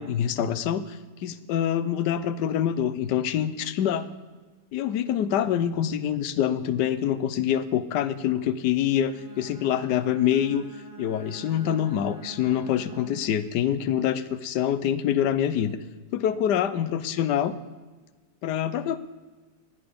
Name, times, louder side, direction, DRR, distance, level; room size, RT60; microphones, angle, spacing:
voice 1, 0.0-4.1 4.7-10.6 11.0-15.8 16.1-17.5 18.4-19.0, left 10 dB, 80° left, 14 dB, 1.3 m, -25 dB
Bowed string instrument, 9.0-13.5, right 6 dB, 25° right, 1.0 m, -45 dB
18.0 x 11.0 x 5.2 m, 1.3 s
omnidirectional pair, 1.8 m